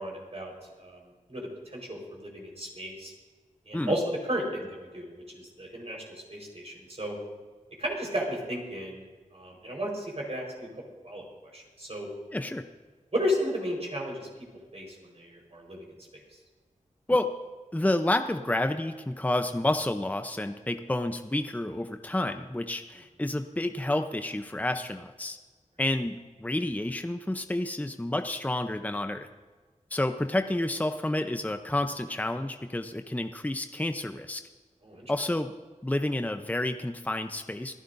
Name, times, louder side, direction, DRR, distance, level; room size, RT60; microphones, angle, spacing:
voice 1, 0.0-3.1 3.7-7.2 7.8-9.0 9.3-10.7 11.0-11.3 11.5-12.1 13.1-14.3 14.7-15.9 34.8-35.1, equal, 50° right, -2 dB, 4.5 m, -34 dB
voice 2, 12.3-12.7 17.1-17.3 17.7-25.4 25.8-29.3 29.9-34.4 35.1-35.5 35.8-37.7, left 1 dB, 10° left, 7 dB, 0.7 m, -29 dB
27.0 x 11.0 x 2.7 m, 1.3 s
cardioid pair, 40°, 13 cm